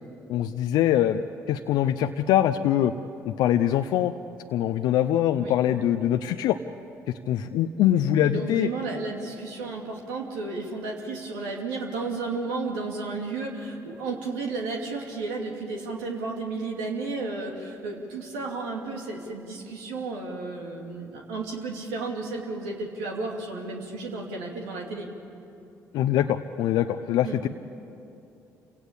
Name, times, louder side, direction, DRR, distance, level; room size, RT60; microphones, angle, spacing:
voice 1, 0.3-2.9 3.3-4.1 4.5-6.6 7.3-8.7 25.9-27.5, left 11 dB, 80° left, 8 dB, 0.6 m, -23 dB
voice 2, 8.1-25.1 27.2-27.4, right 3 dB, 90° right, 0 dB, 2.8 m, -33 dB
27.5 x 17.5 x 8.5 m, 2.7 s
supercardioid pair, 55°, 7 cm